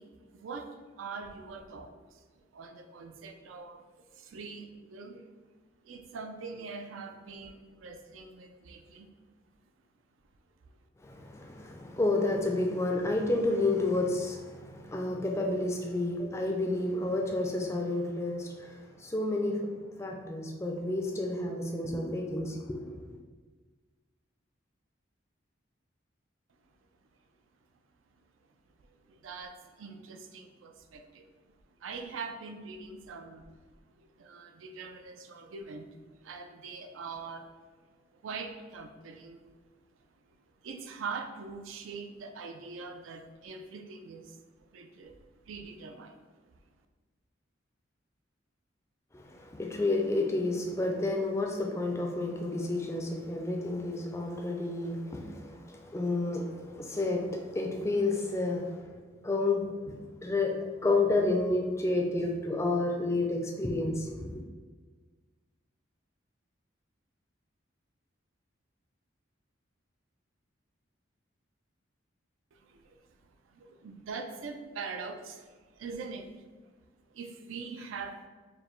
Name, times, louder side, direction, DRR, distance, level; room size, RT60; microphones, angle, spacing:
voice 1, 0.0-3.8 4.1-5.3 5.8-9.1 28.4-28.5 28.9-31.3 31.8-33.5 34.0-37.5 37.8-37.9 38.1-39.6 39.9-40.0 40.3-40.4 40.6-45.2 45.5-46.2 46.4-46.5 72.5-73.1 73.4-76.3 77.1-78.3, right 4 dB, 90° right, 6 dB, 0.4 m, -43 dB
voice 2, 11.0-19.7 20.0-23.2 49.1-59.0 59.2-64.4, left 2 dB, 15° left, 2 dB, 0.3 m, -30 dB
5.0 x 2.2 x 3.1 m, 1.4 s
head